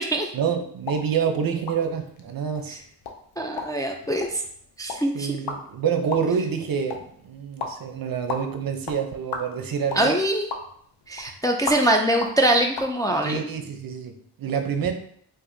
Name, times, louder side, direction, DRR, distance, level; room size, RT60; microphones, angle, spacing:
voice 1, 0.3-2.8 5.1-10.1 13.2-14.9, right 7 dB, 55° right, 5 dB, 0.6 m, -27 dB
sound 1, 0.8-12.9, left 4 dB, 70° left, 0.7 m, -38 dB
voice 2, 3.4-4.4 4.8-5.3 9.9-10.5 11.1-13.4, right 1 dB, 10° left, 2 dB, 0.3 m, -23 dB
4.7 x 2.6 x 2.6 m, 0.65 s
cardioid pair, 75°, 42 cm